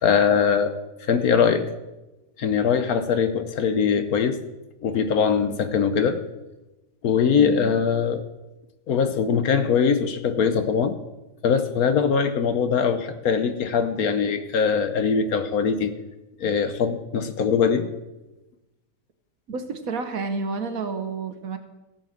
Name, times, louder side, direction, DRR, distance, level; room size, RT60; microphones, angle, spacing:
voice 1, 0.0-0.7 1.1-1.7 2.4-4.4 4.8-6.2 7.0-8.2 8.9-10.9 11.4-15.9 16.4-17.9, left 6 dB, 65° left, 9 dB, 1.2 m, -22 dB
voice 2, 7.3-7.8 19.5-21.6, right 4 dB, 60° right, 8 dB, 1.3 m, -30 dB
16.0 x 5.4 x 7.4 m, 1.0 s
omnidirectional pair, 1.8 m